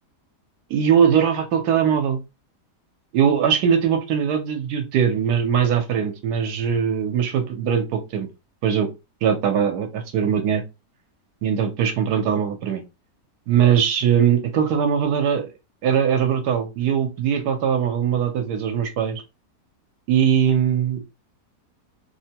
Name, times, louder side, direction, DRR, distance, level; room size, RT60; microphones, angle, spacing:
voice 1, 0.7-2.2 3.1-8.3 8.6-8.9 9.2-10.6 11.4-12.8 13.5-15.5 15.8-19.2 20.1-21.0, right 8 dB, 75° right, 5 dB, 1.2 m, -21 dB
3.3 x 2.2 x 2.7 m, 0.25 s
omnidirectional pair, 1.8 m